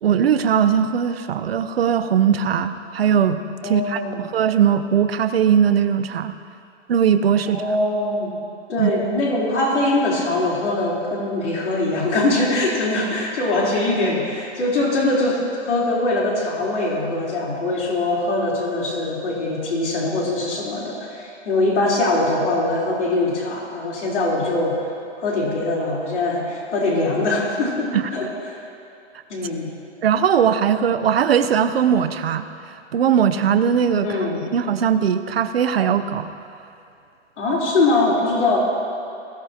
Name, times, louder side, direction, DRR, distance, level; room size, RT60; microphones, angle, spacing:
voice 1, 0.0-6.3 6.9-7.6 8.8-8.9 27.9-28.1 30.0-32.5 32.9-36.3, right 8 dB, 55° right, 10 dB, 0.8 m, -19 dB
voice 2, 3.6-4.2 7.4-8.3 8.7-24.8 25.2-28.6 29.3-29.7 34.0-34.4 37.4-38.6, left 2 dB, 70° left, -4 dB, 3.9 m, -22 dB
21.0 x 16.5 x 2.9 m, 2.5 s
hypercardioid pair, 175°, 36 cm